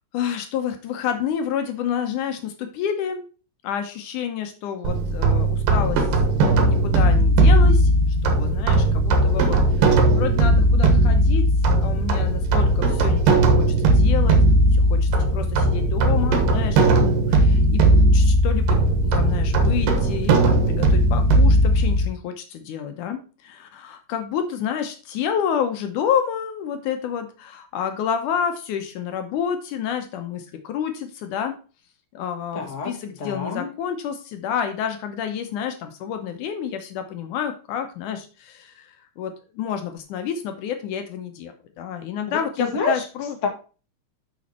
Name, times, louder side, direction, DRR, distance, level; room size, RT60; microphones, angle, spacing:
voice 1, 0.1-3.2 3.6-6.1 6.7-7.9 8.2-11.5 11.8-14.4 14.7-17.8 18.1-31.6 32.1-43.4, left 8 dB, 75° left, 7 dB, 2.3 m, -29 dB
sound 1, 4.8-22.1, right 1 dB, 85° right, 3.0 m, -18 dB
voice 2, 32.5-33.7 42.3-43.0 43.4-43.5, left 4 dB, 30° left, 0 dB, 1.5 m, -27 dB
6.8 x 6.2 x 4.2 m, 0.36 s
omnidirectional pair, 3.8 m